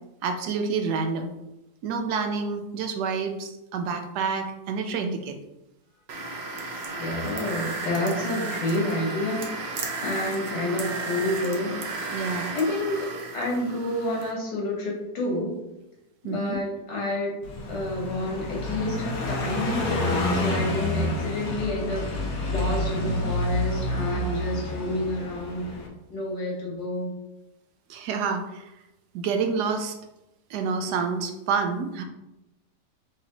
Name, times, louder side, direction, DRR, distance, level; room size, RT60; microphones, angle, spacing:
voice 1, 0.2-1.3 1.8-5.4 12.1-12.5 16.2-16.6 27.9-28.7 29.1-29.9 30.5-32.0, right 5 dB, 75° right, 5 dB, 1.1 m, -28 dB
sound 1, 6.1-14.3, right 3 dB, 55° right, 0.7 m, -34 dB
voice 2, 6.9-11.8 12.5-13.1 13.3-15.6 16.2-17.4 17.7-25.7 26.1-27.1, left 1 dB, 85° left, -3 dB, 2.0 m, -29 dB
Car passing by, 17.4-25.9, left 1 dB, 65° left, 1.2 m, -28 dB
6.1 x 2.8 x 2.9 m, 0.93 s
omnidirectional pair, 1.8 m